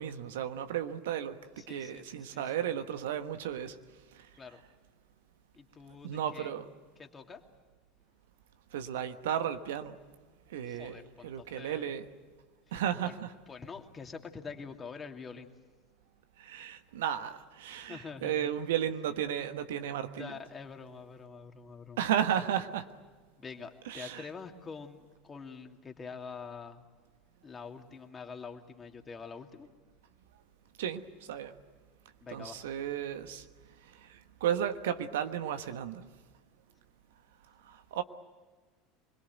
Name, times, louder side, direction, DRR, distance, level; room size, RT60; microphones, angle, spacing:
voice 1, 0.0-3.8 4.1-4.3 6.0-6.6 8.7-10.0 10.5-10.9 11.2-12.0 12.7-13.3 16.4-20.3 22.0-22.9 23.9-24.2 30.8-31.5 32.3-33.4 33.8-36.0 37.6-38.0, right 9 dB, 70° right, 9 dB, 1.3 m, -34 dB
voice 2, 1.6-2.5 4.3-4.6 5.5-6.5 7.0-7.4 10.6-11.9 13.0-13.1 13.5-15.5 17.7-18.5 20.2-22.0 23.4-26.9 27.4-29.7 32.2-32.7, left 5 dB, 25° left, 4 dB, 2.6 m, -46 dB
26.5 x 21.5 x 9.3 m, 1.4 s
hypercardioid pair, 75°, 0 cm